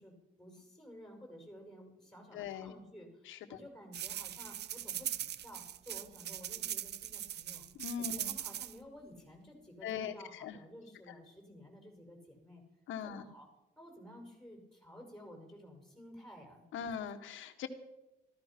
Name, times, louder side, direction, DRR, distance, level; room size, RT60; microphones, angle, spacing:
voice 1, 0.0-7.6 8.0-12.6 13.0-13.5 13.8-16.6, equal, ahead, 2 dB, 5.6 m, -53 dB
voice 2, 2.3-2.7 3.3-3.6 7.8-8.3 9.8-10.6 12.9-13.2 16.7-17.7, left 8 dB, 80° left, 7 dB, 1.5 m, -41 dB
sound 1, 3.9-8.7, right 11 dB, 60° right, 0.6 m, -40 dB
14.5 x 13.5 x 6.0 m, 0.94 s
cardioid pair, 90°, 20 cm